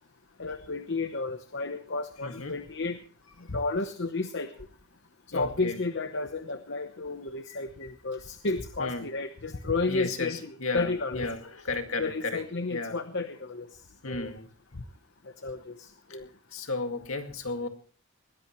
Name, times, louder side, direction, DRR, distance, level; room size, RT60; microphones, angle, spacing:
voice 1, 0.4-3.0 3.5-4.5 5.3-11.3 12.0-13.7 14.0-14.3 15.4-16.3, left 3 dB, 50° left, 8 dB, 0.9 m, -32 dB
voice 2, 2.2-2.6 5.3-5.8 7.5-7.6 8.8-9.1 9.8-12.4 12.7-13.0 14.0-14.5 16.1-16.2 16.5-17.7, left 3 dB, 65° left, 6 dB, 2.1 m, -34 dB
20.5 x 16.5 x 3.1 m, 0.41 s
head